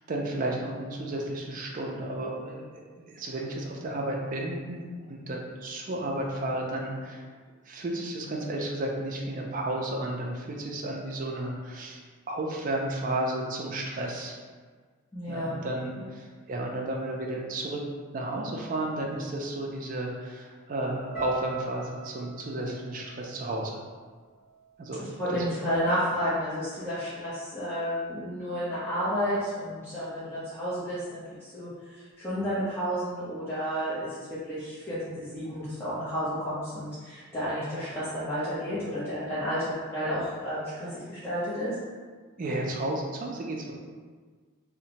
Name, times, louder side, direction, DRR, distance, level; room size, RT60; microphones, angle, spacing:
voice 1, 0.1-7.2 7.7-14.4 15.3-17.8 18.1-23.8 24.8-25.0 25.3-25.5 42.4-43.7, right 1 dB, 40° right, 0 dB, 0.4 m, -33 dB
voice 2, 15.1-15.6 25.0-41.8, equal, 10° left, -13 dB, 0.5 m, -31 dB
sound 1, 21.1-25.4 25.6-26.4 27.0-27.2, right 2 dB, 15° right, 1.2 m, -43 dB
2.7 x 2.1 x 2.8 m, 1.5 s
head